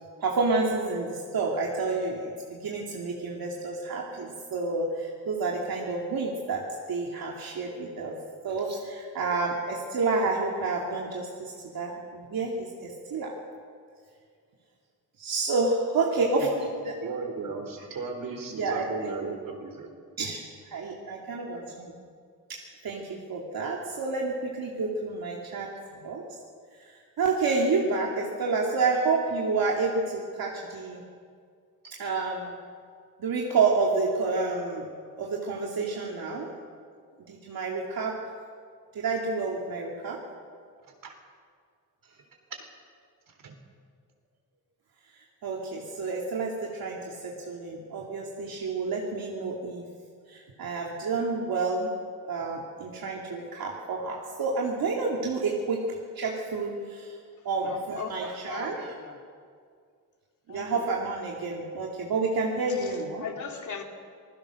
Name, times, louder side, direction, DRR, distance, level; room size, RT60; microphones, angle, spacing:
voice 1, 0.2-6.6 6.9-8.1 8.4-13.3 15.2-16.9 18.5-19.1 20.2-20.4 20.7-21.9 22.5-22.6 22.8-23.0 23.3-25.7 26.0-26.2 26.8-26.9 27.2-31.0 32.0-32.5 33.2-34.8 35.2-36.5 37.3-38.2 38.9-40.2 45.4-49.9 50.3-51.9 52.3-55.8 56.2-57.2 57.4-58.9 60.5-63.3, right 3 dB, 85° right, 2.7 m, -29 dB
voice 2, 16.2-16.5 17.0-19.9 41.0-41.1 43.4-43.5, right 4 dB, 70° right, 4.0 m, -36 dB
voice 3, 57.6-59.2 60.5-60.6 63.2-63.8, left 6 dB, 55° left, 2.9 m, -38 dB
27.5 x 21.0 x 6.5 m
wide cardioid pair, 165°, 35 cm